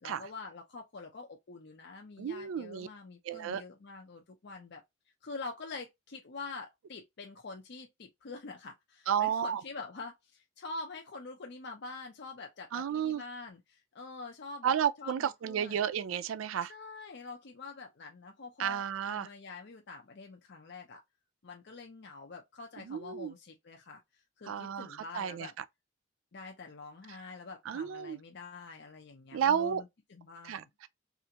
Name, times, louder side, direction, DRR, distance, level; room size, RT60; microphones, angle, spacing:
voice 1, 0.0-4.8 5.2-15.8 16.7-21.0 21.4-25.5 26.3-30.7, left 3 dB, 55° left, 0.6 m, -46 dB
voice 2, 2.2-2.9 3.2-3.6 9.1-9.6 12.7-13.2 14.6-16.7 18.6-19.3 22.8-23.3 24.4-25.6 27.7-28.2 29.3-29.8 30.4-30.9, right 8 dB, 85° right, 0.4 m, -32 dB
3.3 x 2.5 x 2.8 m
head